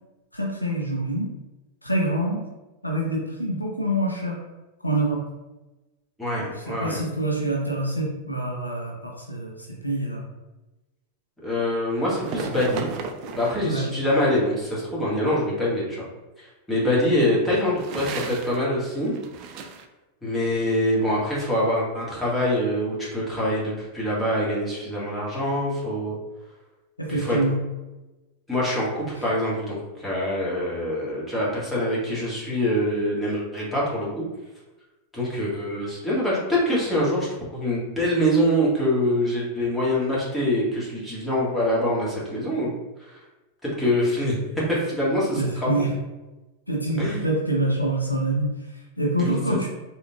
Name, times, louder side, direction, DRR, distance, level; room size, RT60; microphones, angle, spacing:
voice 1, 0.3-1.3 1.8-2.4 2.8-4.4 4.8-5.2 6.6-10.2 13.6-13.9 27.0-27.6 29.2-29.3 45.4-45.9 46.7-49.7, right 1 dB, 85° left, -1 dB, 0.6 m, -26 dB
voice 2, 6.2-6.9 11.4-12.9 13.4-16.1 16.4-19.1 20.2-26.2 27.1-27.4 28.5-34.2 35.1-42.7 43.1-43.2 43.6-44.4 44.7-45.7 47.0-47.2 49.2-49.7, equal, 5° left, -7 dB, 1.4 m, -24 dB
Toys Legos Shaken-Dropped by-JGrimm, 12.2-13.7 17.6-18.6 18.9-19.8, right 5 dB, 40° right, 0.3 m, -35 dB
3.5 x 2.9 x 2.2 m, 1.1 s
figure-of-eight pair, 90°, 0 cm